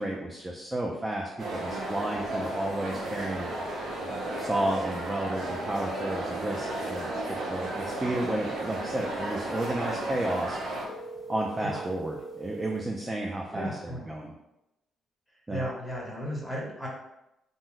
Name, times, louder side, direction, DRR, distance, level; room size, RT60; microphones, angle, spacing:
voice 1, 0.0-3.5 4.4-7.1 7.5-10.6 11.3-14.3 15.5-15.6, right 1 dB, 20° right, 0 dB, 0.4 m, -32 dB
sound 1, 1.4-10.9, right 2 dB, 65° right, 0.7 m, -34 dB
sound 2, 1.5-13.6, left 4 dB, 80° left, 0.5 m, -50 dB
sound 3, 10.8-12.9, right 3 dB, 45° left, 0.7 m, -42 dB
voice 2, 13.5-14.1 15.5-16.9, equal, 5° right, -5 dB, 1.1 m, -35 dB
2.6 x 2.1 x 3.7 m, 0.89 s
cardioid pair, 90°, 0 cm